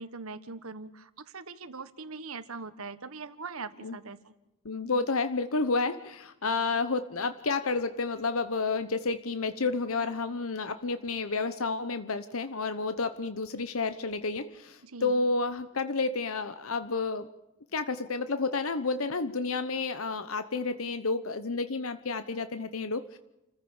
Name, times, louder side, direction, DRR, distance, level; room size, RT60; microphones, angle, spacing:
voice 1, 0.0-4.3 14.8-15.2, right 4 dB, 80° right, 12 dB, 1.5 m, -41 dB
voice 2, 4.6-17.3 17.7-23.2, left 3 dB, 75° left, 11 dB, 1.0 m, -30 dB
29.5 x 15.0 x 7.2 m, 0.96 s
head